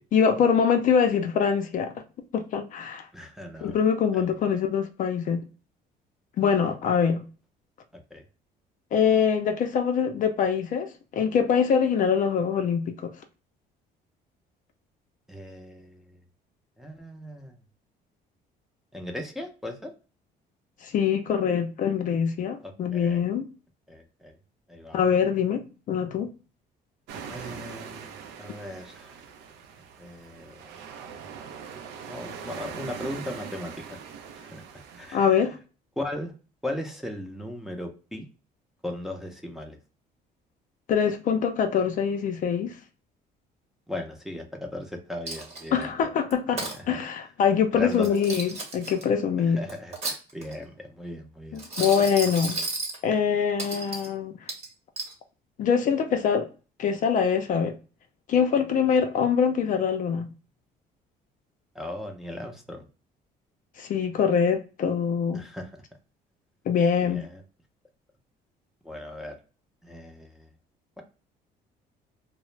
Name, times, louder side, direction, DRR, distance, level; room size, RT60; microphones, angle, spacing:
voice 1, 0.1-1.9 2.3-3.1 3.6-5.5 6.4-7.3 8.9-13.1 20.8-23.4 24.9-26.3 35.1-35.6 40.9-42.7 45.7-49.6 51.5-52.6 53.0-54.3 55.6-56.5 56.8-57.7 58.3-60.3 63.8-65.4 66.7-67.3, left 7 dB, 50° left, 0.4 m, -24 dB
voice 2, 3.1-3.8 4.1-4.3 8.1-8.2 15.3-16.2 16.8-17.6 18.9-19.9 22.6-23.3 23.9-24.4 24.7-25.2 27.3-29.1 30.0-30.6 32.1-34.0 34.3-35.5 36.0-36.3 36.6-38.3 38.8-39.8 43.9-46.1 46.7-47.0 47.7-48.2 49.5-51.9 61.7-62.9 65.3-65.8 67.0-67.4 68.8-69.4 69.8-70.5, left 1 dB, ahead, 0.5 m, -38 dB
sound 1, 27.1-35.2, right 6 dB, 90° right, 0.5 m, -42 dB
Coin (dropping), 45.3-45.8 46.3-46.8 47.9-49.0 49.7-50.6 51.6-53.0 53.6-54.1 54.5-55.1, right 3 dB, 40° right, 1.0 m, -33 dB
2.4 x 2.0 x 3.0 m
cardioid pair, 110°, 17 cm